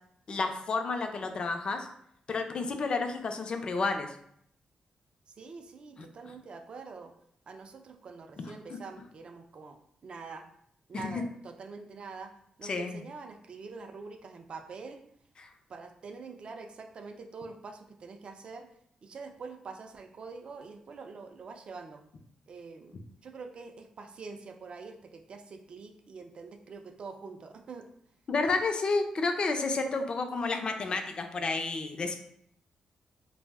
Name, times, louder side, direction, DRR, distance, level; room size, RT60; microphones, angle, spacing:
voice 1, 0.3-1.9 2.3-4.2 8.7-8.8 10.9-11.2 12.6-13.0 15.4-15.5 28.3-32.1, left 3 dB, 45° left, 6 dB, 0.4 m, -31 dB
voice 2, 5.3-7.1 7.5-10.5 10.9-15.0 15.7-18.7 19.0-22.0 22.5-27.9, right 4 dB, 50° right, 6 dB, 0.3 m, -45 dB
2.5 x 2.0 x 3.4 m, 0.69 s
cardioid pair, 95°, 2 cm